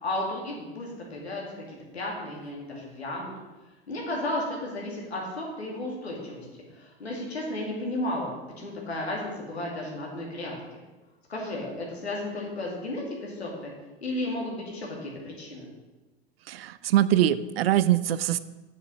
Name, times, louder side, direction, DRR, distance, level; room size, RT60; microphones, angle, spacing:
voice 1, 0.0-3.3 3.9-6.4 6.7-8.3 8.6-10.5 11.3-13.7 14.0-15.6, left 1 dB, 85° left, -2 dB, 2.7 m, -33 dB
voice 2, 16.5-18.4, right 12 dB, 70° right, 15 dB, 0.6 m, -23 dB
7.2 x 6.9 x 6.4 m, 1.2 s
figure-of-eight pair, 85°, 31 cm